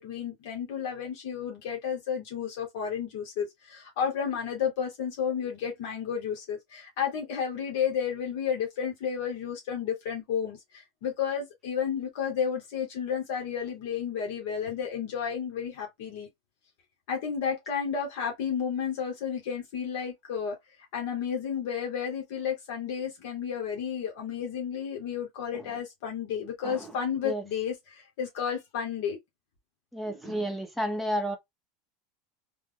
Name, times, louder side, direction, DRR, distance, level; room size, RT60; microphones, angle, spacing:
voice 1, 0.0-16.3 17.1-20.5 20.9-29.2, left 7 dB, 60° left, 1.1 m, -32 dB
voice 2, 29.9-31.4, equal, ahead, 0.7 m, -31 dB
3.3 x 2.1 x 3.4 m
supercardioid pair, 170°, 0 cm